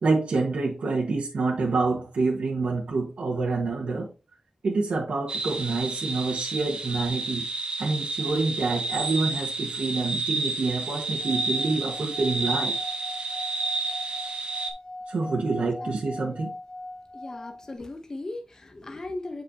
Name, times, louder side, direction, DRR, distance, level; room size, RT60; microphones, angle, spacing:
voice 1, 0.0-4.1 4.6-7.4 7.8-12.8 15.1-16.5, right 3 dB, 80° right, -1 dB, 1.4 m, -27 dB
sound 1, 5.3-14.7, right 3 dB, 55° right, 1.2 m, -30 dB
Singing / Glass, 11.2-17.8, left 2 dB, 50° left, 2.9 m, -40 dB
voice 2, 15.8-16.2 17.1-19.4, left 2 dB, 30° left, 5 dB, 0.9 m, -38 dB
7.6 x 5.4 x 2.8 m, 0.29 s
wide cardioid pair, 140°, 2 cm